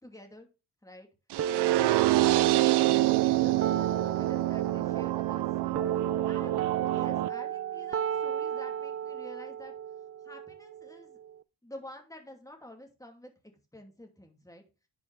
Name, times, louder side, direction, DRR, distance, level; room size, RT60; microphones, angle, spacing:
voice 1, 0.0-0.5 0.8-1.1 1.6-5.5 6.2-9.7 10.2-11.2 11.6-13.3 13.7-14.6, left 1 dB, 10° left, 3 dB, 2.5 m, -49 dB
sound 1, 1.3-7.3, right 17 dB, 90° right, 0.6 m, -26 dB
sound 2, 1.4-11.4, right 10 dB, 35° right, 0.5 m, -34 dB
Wind instrument woodwind instrument, 2.8-9.0, right 2 dB, 15° right, 3.6 m, -55 dB
10.5 x 5.4 x 3.4 m, 0.31 s
cardioid pair, 105°, 39 cm